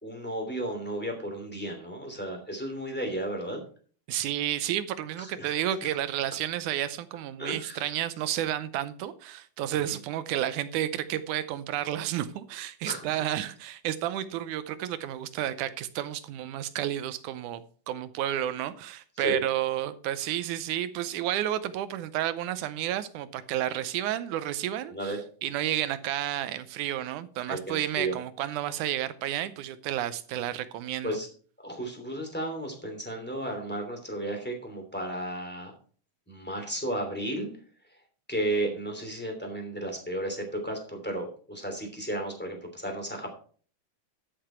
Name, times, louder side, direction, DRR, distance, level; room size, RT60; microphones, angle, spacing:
voice 1, 0.0-3.6 5.2-5.5 5.8-5.9 7.4-7.9 9.8-10.0 12.8-13.0 19.2-19.4 24.9-25.2 27.5-28.1 31.0-31.3 31.6-35.7 36.3-37.5 38.3-43.3, right 1 dB, 5° left, 2.5 m, -33 dB
voice 2, 4.1-25.2 25.4-31.2, right 12 dB, 85° right, 2.2 m, -31 dB
12.5 x 6.8 x 4.5 m
omnidirectional pair, 3.5 m